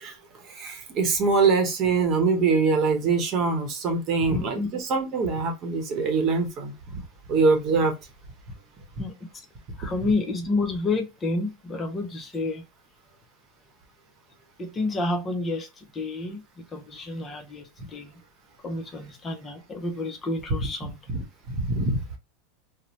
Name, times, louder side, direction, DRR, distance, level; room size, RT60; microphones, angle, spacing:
voice 1, 0.5-7.0 7.3-7.9 21.5-22.0, right 4 dB, 40° right, 0.8 m, -23 dB
voice 2, 4.3-4.7 9.0-9.5 9.8-12.6 14.6-18.1 18.6-21.0, left 2 dB, 25° left, 0.5 m, -30 dB
2.6 x 2.0 x 3.0 m
supercardioid pair, 125°, 0 cm